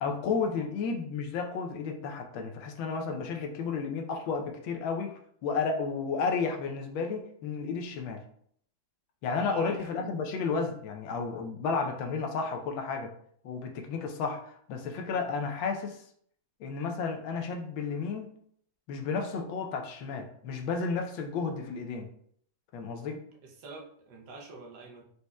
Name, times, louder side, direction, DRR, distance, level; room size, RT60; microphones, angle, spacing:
voice 1, 0.0-8.2 9.2-13.1 13.4-16.0 16.6-18.3 18.9-22.1 22.7-23.2, left 5 dB, 90° left, 4 dB, 1.5 m, -32 dB
voice 2, 9.4-9.9 11.7-11.9 15.1-15.3 23.4-25.0, right 4 dB, 65° right, 0 dB, 1.3 m, -46 dB
4.8 x 4.1 x 2.2 m, 0.64 s
omnidirectional pair, 2.1 m